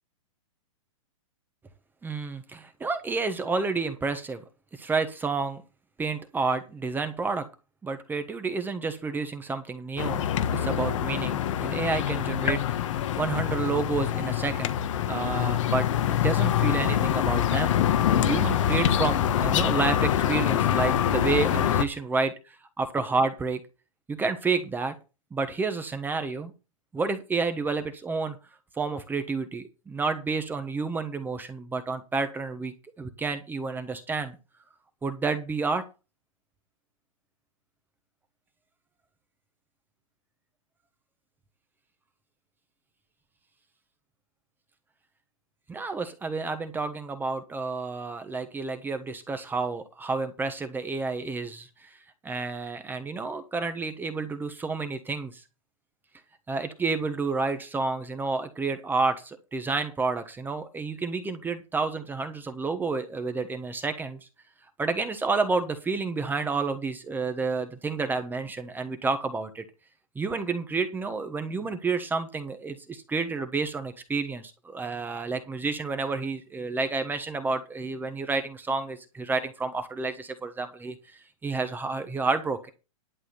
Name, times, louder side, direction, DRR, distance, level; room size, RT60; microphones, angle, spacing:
voice 1, 2.0-4.4 4.7-5.6 6.0-7.5 7.8-10.3 10.5-14.7 15.1-17.8 18.2-23.6 24.1-24.9 25.3-26.5 26.9-28.4 28.8-34.4 35.0-35.8 45.7-52.0 52.2-55.4 56.5-64.2 64.8-69.6 70.1-82.7, right 4 dB, 10° right, 9 dB, 1.2 m, -30 dB
sound 1, 10.0-21.8, left 10 dB, 65° left, 1.4 m, -25 dB
11.5 x 4.8 x 7.9 m, 0.30 s
hypercardioid pair, 130°, 17 cm